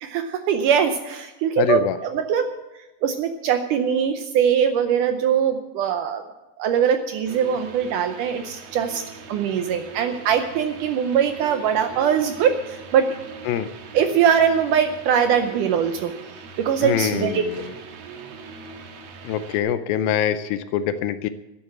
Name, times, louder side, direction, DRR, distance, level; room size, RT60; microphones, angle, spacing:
voice 1, 0.0-2.5 3.0-6.2 6.6-9.0 9.3-13.1 13.9-16.1 16.6-17.4, right 8 dB, 75° right, 7 dB, 2.0 m, -21 dB
voice 2, 1.6-2.0 13.5-13.7 16.8-17.6 19.2-21.3, left 10 dB, 80° left, 12 dB, 2.3 m, -24 dB
sound 1, 7.3-19.6, right 6 dB, 60° right, 1.9 m, -41 dB
12.5 x 10.5 x 7.4 m, 1.0 s
omnidirectional pair, 4.4 m